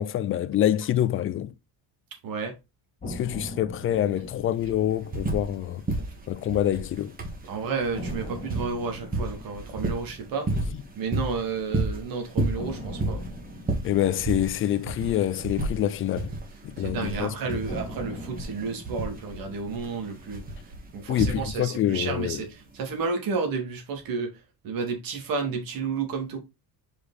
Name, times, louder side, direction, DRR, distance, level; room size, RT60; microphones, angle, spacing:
voice 1, 0.0-1.5 3.0-5.8 6.3-7.2 13.8-16.3 16.6-17.6 21.1-22.4, left 11 dB, 35° left, 0.4 m, -26 dB
voice 2, 2.2-2.6 7.5-10.5 10.9-13.2 16.8-26.4, right 5 dB, 65° right, 2.4 m, -31 dB
sound 1, 3.0-7.1 7.4-7.5 7.9-12.0 12.6-16.9 17.7-22.0, left 1 dB, 20° left, 2.3 m, -42 dB
sound 2, 3.8-3.9 4.2-5.6 5.9-21.8 22.9-23.0, right 2 dB, 25° right, 1.7 m, -32 dB
5.2 x 4.8 x 4.0 m
cardioid pair, 160°, 37 cm